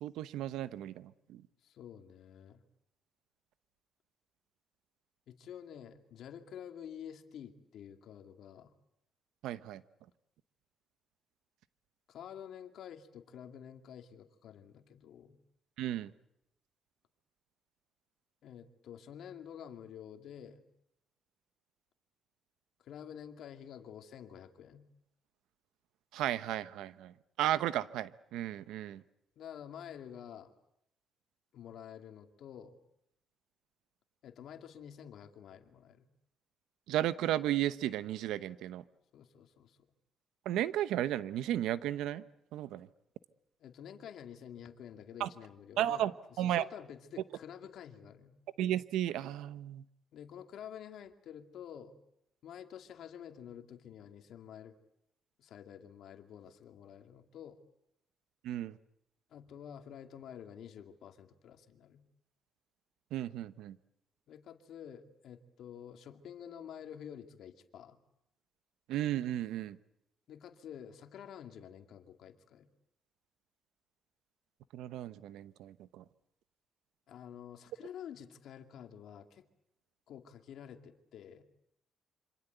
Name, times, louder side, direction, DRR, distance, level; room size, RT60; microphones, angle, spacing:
voice 1, 0.0-1.4 9.4-9.8 15.8-16.1 26.1-29.0 36.9-38.8 40.4-42.2 42.5-42.9 45.2-45.3 45.8-46.7 48.6-49.8 58.4-58.8 63.1-63.8 68.9-69.8 74.7-76.0, right 12 dB, 90° right, 14 dB, 1.0 m, -34 dB
voice 2, 1.6-2.6 5.3-8.7 12.1-15.4 18.4-20.7 22.8-24.9 29.4-30.5 31.5-32.8 34.2-36.1 39.1-39.8 43.6-46.0 46.3-48.4 50.1-51.9 52.4-54.8 55.4-57.6 59.3-62.0 64.3-68.0 70.3-72.7 77.1-79.4 80.1-81.5, left 9 dB, 75° left, 6 dB, 2.3 m, -49 dB
26.5 x 25.5 x 8.1 m, 0.79 s
cardioid pair, 90°, 0 cm